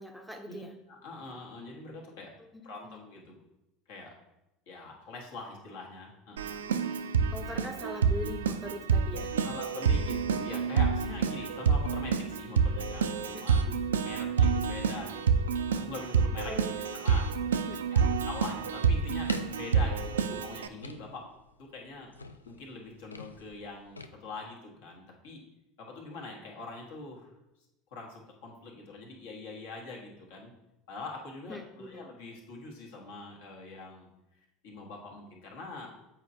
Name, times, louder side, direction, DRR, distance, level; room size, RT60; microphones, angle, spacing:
voice 1, 0.0-0.8 2.4-3.1 7.3-9.5 13.3-14.0 16.5-16.9 17.3-18.3 31.5-32.1, equal, ahead, 3 dB, 0.6 m, -43 dB
voice 2, 0.9-2.3 2.6-3.4 3.9-4.1 4.7-6.6 9.4-16.5 17.0-17.3 17.9-21.3 21.6-22.1 22.4-25.4 25.8-27.3 27.9-30.5 30.9-34.1 34.3-35.9, left 3 dB, 65° left, -1 dB, 1.3 m, -43 dB
Keyboard (musical), 6.4-20.7, right 6 dB, 75° right, 0.3 m, -28 dB
sound 1, 17.5-24.1, left 3 dB, 85° left, 0.3 m, -48 dB
8.0 x 4.4 x 2.6 m, 0.91 s
figure-of-eight pair, 75°, 0 cm